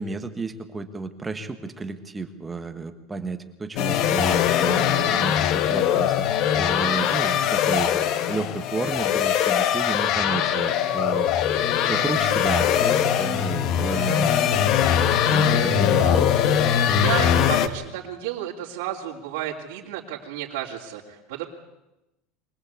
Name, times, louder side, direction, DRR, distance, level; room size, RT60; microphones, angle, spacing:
voice 1, 0.0-6.3 6.6-7.9 8.3-11.3 11.9-14.5 15.3-16.1, right 3 dB, 10° right, 7 dB, 1.2 m, -32 dB
sound 1, 3.8-17.7, left 9 dB, 40° left, 1.1 m, -21 dB
voice 2, 15.9-16.3 16.9-21.4, right 11 dB, 75° right, -6 dB, 3.1 m, -32 dB
24.0 x 19.5 x 8.3 m, 0.93 s
cardioid pair, 175°, 0 cm